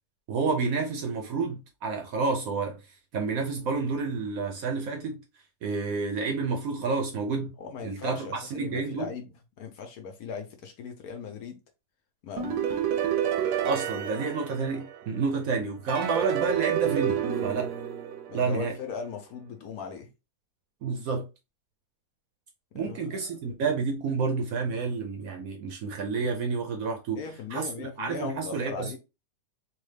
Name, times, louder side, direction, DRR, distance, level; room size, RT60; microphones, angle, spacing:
voice 1, 0.3-2.8 3.1-5.2 5.6-7.5 7.8-9.1 13.6-17.7 18.3-18.8 20.8-21.3 22.7-27.2 27.5-29.0, right 4 dB, 70° right, 0.9 m, -29 dB
voice 2, 7.6-9.3 9.6-11.6 12.2-12.8 18.3-20.1 22.7-23.3 27.2-29.0, left 5 dB, 65° left, 1.1 m, -39 dB
sound 1, 12.4-15.2 15.9-18.7, right 9 dB, 85° right, 1.2 m, -29 dB
3.4 x 2.4 x 3.2 m
omnidirectional pair, 1.9 m